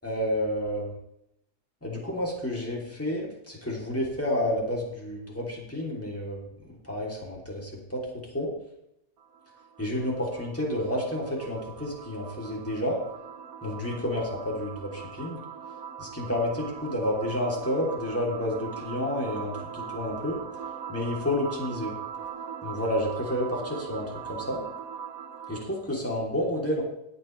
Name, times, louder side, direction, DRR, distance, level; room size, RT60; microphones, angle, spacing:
voice 1, 0.0-1.0 1.8-6.4 6.8-8.1 8.3-8.5 9.8-13.0 13.6-15.4 16.0-20.4 20.9-21.9 22.6-24.6 25.5-26.8, left 1 dB, 10° left, -2 dB, 3.1 m, -30 dB
sound 1, 9.2-25.8, right 7 dB, 70° right, 1.2 m, -40 dB
18.0 x 8.1 x 3.3 m, 0.80 s
omnidirectional pair, 1.7 m